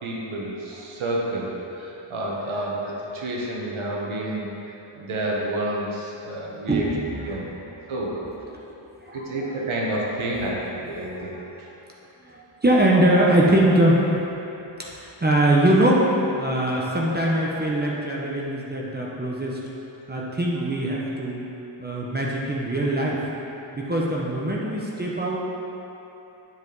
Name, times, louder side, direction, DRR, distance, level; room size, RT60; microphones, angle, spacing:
voice 1, 0.0-4.5 4.9-6.9 7.2-7.4 7.9-8.3 9.1-11.3 16.7-16.8 17.9-18.0, right 1 dB, 75° right, -3 dB, 1.3 m, -29 dB
voice 2, 6.7-7.7 9.0-9.2 11.3-11.4 12.3-14.0 14.9-16.0 16.4-19.6 20.1-21.4 21.8-23.2 23.7-25.4, right 1 dB, 20° right, -4 dB, 1.0 m, -22 dB
9.4 x 5.2 x 4.0 m, 3.0 s
wide cardioid pair, 80°, 48 cm